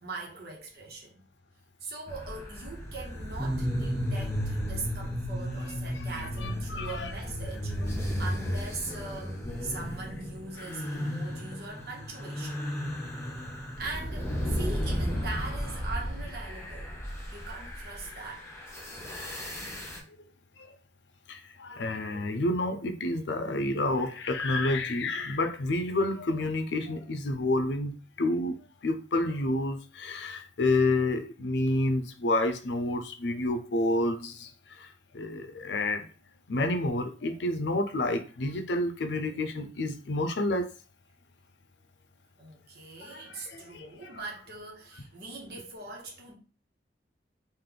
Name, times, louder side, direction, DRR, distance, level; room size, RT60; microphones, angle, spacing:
voice 1, 0.0-1.2 1.8-7.8 8.2-12.6 13.8-17.0 17.3-18.5 42.4-46.3, right 3 dB, 60° right, 1.2 m, -41 dB
sound 1, 2.1-20.0, equal, 15° left, 0.9 m, -34 dB
voice 2, 6.4-7.1 20.6-20.7 21.3-28.6 28.8-36.1 36.5-40.7 43.0-43.9, left 2 dB, 80° left, 0.5 m, -29 dB
3.3 x 2.5 x 3.9 m
head